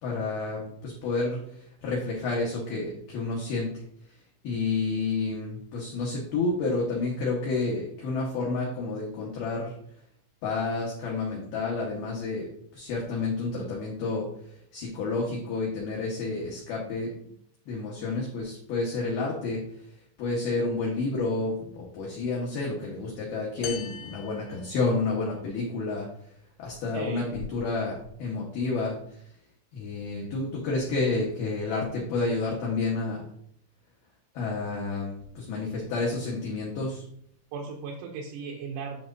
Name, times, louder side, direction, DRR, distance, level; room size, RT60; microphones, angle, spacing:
voice 1, 0.0-3.7 4.4-9.7 10.4-14.2 14.7-17.1 17.7-19.6 20.2-26.1 26.6-29.0 29.7-33.2 34.3-37.0, left 3 dB, 70° left, -3 dB, 2.4 m, -30 dB
sound 1, 23.6-25.4, left 9 dB, 90° left, 3.4 m, -41 dB
voice 2, 26.9-27.3 37.5-39.1, right 5 dB, 80° right, 0 dB, 3.1 m, -37 dB
9.1 x 5.9 x 2.6 m, 0.69 s
omnidirectional pair, 5.9 m